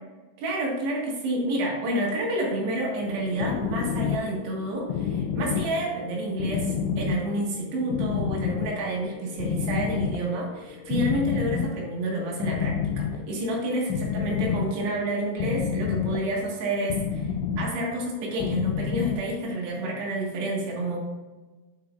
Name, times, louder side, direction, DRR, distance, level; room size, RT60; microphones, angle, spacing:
voice 1, 0.4-17.3 17.6-21.0, right 1 dB, 70° right, -2 dB, 3.7 m, -29 dB
sound 1, 3.0-19.7, left 7 dB, 85° left, 2.6 m, -30 dB
10.0 x 6.0 x 2.5 m, 1.3 s
omnidirectional pair, 5.2 m